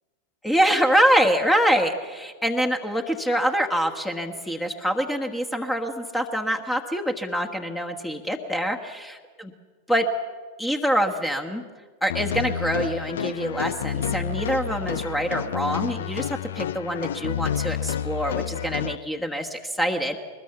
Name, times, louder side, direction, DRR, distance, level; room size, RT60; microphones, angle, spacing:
voice 1, 0.4-9.5 9.9-10.1 10.6-11.6 12.0-20.2, equal, 5° left, 5 dB, 1.4 m, -25 dB
sound 1, 12.1-18.9, left 8 dB, 60° left, 0.6 m, -29 dB
22.0 x 20.5 x 7.0 m, 1.5 s
figure-of-eight pair, 90°, 0 cm